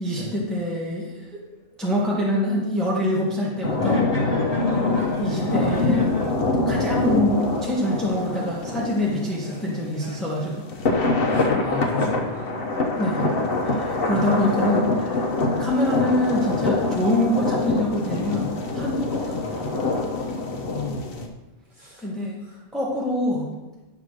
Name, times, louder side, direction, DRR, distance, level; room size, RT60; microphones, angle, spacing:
voice 1, 0.0-1.4 1.8-4.5 5.2-6.1 6.7-10.7 13.0-13.3 13.6-15.2 15.6-19.7 22.0-22.4 22.7-23.5, left 1 dB, ahead, -5 dB, 1.3 m, -25 dB
sound 1, 1.1-1.2 1.6-1.8 2.6-2.8 3.2-3.3 3.7-9.7 10.0-11.1, equal, 25° left, 2.3 m, -39 dB
sound 2, 3.6-9.9 10.7-21.3, left 3 dB, 50° left, 0.9 m, -24 dB
voice 2, 11.3-12.6 14.1-14.2 20.7-21.2 21.8-22.0 22.5-22.6, left 2 dB, 40° right, -5 dB, 2.3 m, -34 dB
10.5 x 3.6 x 6.4 m, 1.1 s
omnidirectional pair, 1.4 m